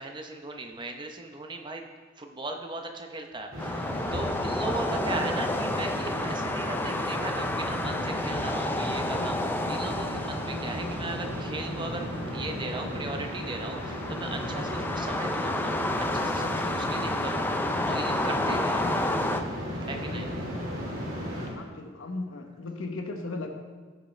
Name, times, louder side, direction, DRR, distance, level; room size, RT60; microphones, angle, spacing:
voice 1, 0.0-1.9 2.2-17.5 17.9-19.1 19.9-20.3, right 2 dB, 25° right, 4 dB, 0.8 m, -37 dB
sound 1, 3.5-21.5, equal, 90° right, 2.2 m, -35 dB
sound 2, 3.6-19.4, left 2 dB, 10° left, 0.4 m, -31 dB
voice 2, 21.5-23.5, left 2 dB, 85° left, 4 dB, 1.1 m, -36 dB
15.0 x 6.4 x 3.3 m, 1.4 s
head